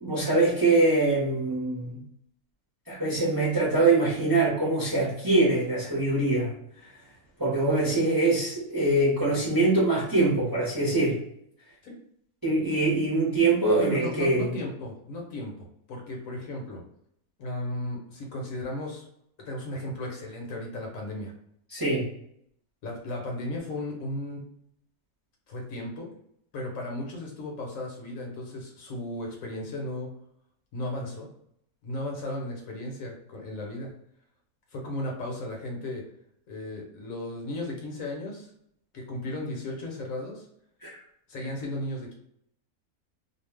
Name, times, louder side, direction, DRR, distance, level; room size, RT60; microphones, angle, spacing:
voice 1, 0.0-2.0 2.9-6.5 6.8-6.9 7.4-11.2 12.4-14.6 21.7-22.1 40.8-41.0, right 2 dB, 20° right, -6 dB, 0.8 m, -23 dB
voice 2, 13.8-16.8 17.4-19.1 19.4-21.3 22.8-24.4 25.5-26.1 26.5-30.1 30.7-31.3 31.8-33.9 34.7-36.0 36.5-38.5 38.9-40.5 41.3-42.1, left 1 dB, 65° left, 0 dB, 1.1 m, -35 dB
2.5 x 2.4 x 3.3 m, 0.73 s
omnidirectional pair, 1.6 m